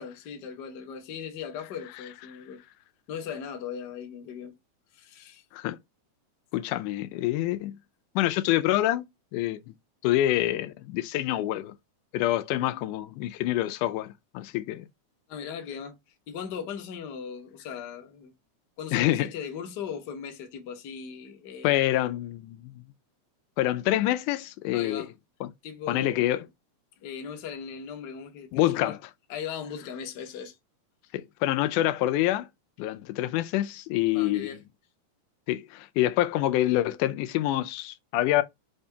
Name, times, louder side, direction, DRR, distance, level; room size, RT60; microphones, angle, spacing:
voice 1, 0.0-2.6 3.1-4.5 4.9-5.4 15.3-16.0 16.3-18.3 18.8-21.8 24.7-25.1 25.6-26.3 27.0-29.0 29.3-30.6 34.1-34.6, left 7 dB, 65° left, 1.0 m, -38 dB
voice 2, 6.5-7.8 8.2-9.1 9.3-9.7 10.0-11.7 12.1-14.9 18.9-19.3 21.6-22.7 23.6-25.1 25.4-25.5 25.9-26.5 28.5-29.0 31.1-32.5 32.8-34.5 35.5-38.4, left 14 dB, 90° left, 2.1 m, -26 dB
5.1 x 2.8 x 3.3 m
omnidirectional pair, 3.5 m